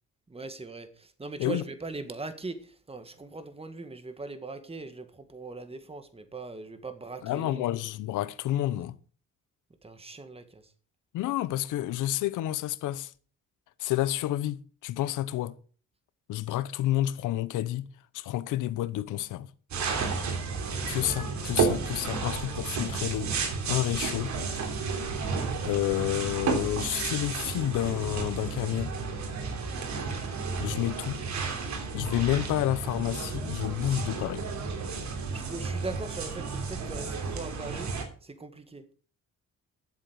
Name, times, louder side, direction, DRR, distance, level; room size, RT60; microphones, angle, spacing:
voice 1, 0.3-7.7 9.8-10.7 35.3-37.9 38.2-38.8, right 3 dB, 20° right, 1.8 m, -40 dB
voice 2, 7.2-9.0 11.1-13.1 13.8-15.6 16.3-17.9 18.1-19.5 20.9-24.3 25.6-28.9 30.6-31.2 31.9-34.4, left 14 dB, 90° left, 0.9 m, -30 dB
sound 1, 19.7-38.0, right 5 dB, 70° right, 3.3 m, -32 dB
12.0 x 7.7 x 6.4 m
cardioid pair, 90°, 30 cm